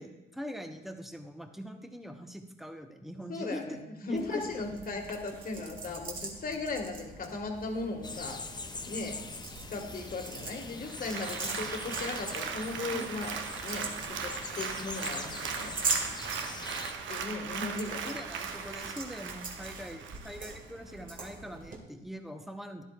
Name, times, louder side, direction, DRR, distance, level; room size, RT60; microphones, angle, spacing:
voice 1, 0.0-4.4 12.9-13.1 18.0-22.8, equal, ahead, 5 dB, 1.0 m, -43 dB
voice 2, 3.3-3.8 4.1-8.4 8.9-9.2 9.7-15.7 17.0-18.2, left 3 dB, 45° left, 3 dB, 1.7 m, -37 dB
sound 1, 4.1-21.8, right 3 dB, 45° right, 2.0 m, -42 dB
sound 2, 8.0-16.9, left 3 dB, 20° left, 0.6 m, -43 dB
Applause, 10.8-20.6 21.0-21.1, right 6 dB, 75° right, 0.8 m, -38 dB
12.5 x 11.0 x 2.4 m, 0.93 s
cardioid pair, 90°, 20 cm